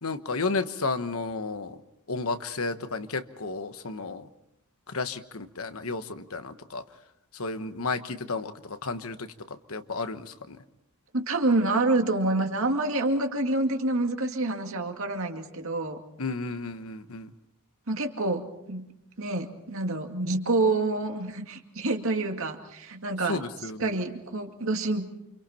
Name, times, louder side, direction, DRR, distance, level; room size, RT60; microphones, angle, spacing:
voice 1, 0.0-1.8 2.1-4.2 4.9-6.8 7.4-9.3 9.7-10.6 16.2-17.3 23.3-23.9, left 3 dB, 65° left, 9 dB, 1.3 m, -32 dB
voice 2, 11.1-16.0 17.9-18.9 19.2-23.4 23.8-25.1, right 2 dB, 65° right, 4 dB, 2.3 m, -27 dB
29.0 x 26.5 x 4.4 m, 0.81 s
head